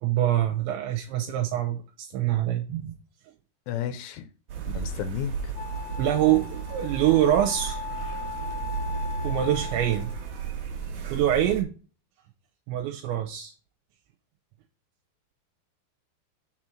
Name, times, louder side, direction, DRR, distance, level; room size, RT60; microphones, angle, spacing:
voice 1, 0.0-3.0 6.0-7.8 9.2-10.1 11.1-11.7 12.7-13.5, right 12 dB, 80° right, 3.0 m, -25 dB
voice 2, 3.7-4.3 4.7-5.5, left 9 dB, 85° left, 3.1 m, -32 dB
sound 1, 4.5-11.6, right 5 dB, 65° right, 1.9 m, -34 dB
Wind instrument woodwind instrument, 5.5-10.2, left 8 dB, ahead, 0.8 m, -38 dB
6.7 x 4.4 x 6.2 m
omnidirectional pair, 5.3 m